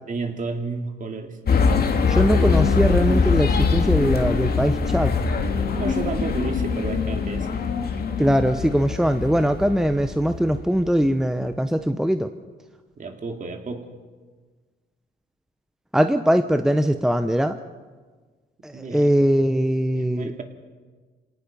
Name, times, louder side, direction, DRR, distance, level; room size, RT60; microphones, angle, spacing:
voice 1, 0.1-1.4 5.7-7.6 13.0-13.9 18.7-19.1 20.0-20.4, right 4 dB, 40° right, 3 dB, 2.9 m, -31 dB
sound 1, 1.5-11.0, left 5 dB, 50° left, 2.1 m, -23 dB
voice 2, 2.1-5.1 8.2-12.3 15.9-17.6 18.6-20.3, equal, ahead, 9 dB, 0.8 m, -21 dB
27.5 x 18.0 x 5.4 m, 1.4 s
cardioid pair, 90°, 20 cm